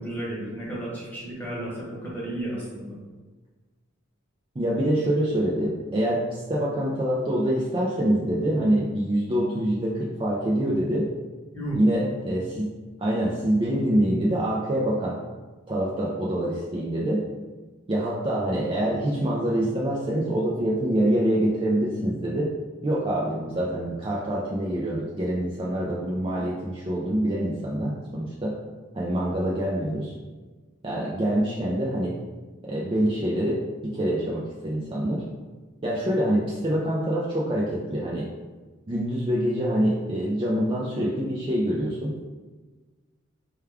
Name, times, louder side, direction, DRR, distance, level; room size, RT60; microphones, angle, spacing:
voice 1, 0.0-3.0 11.5-11.8, right 1 dB, 10° left, -7 dB, 1.1 m, -33 dB
voice 2, 4.6-11.1 11.7-12.7 13.0-15.2 15.7-17.2 17.9-22.5 22.8-28.6 28.9-30.1 30.8-32.1 32.6-35.2 35.8-38.3 38.9-42.1, right 1 dB, 25° right, -5 dB, 0.4 m, -25 dB
4.6 x 2.3 x 3.4 m, 1.3 s
head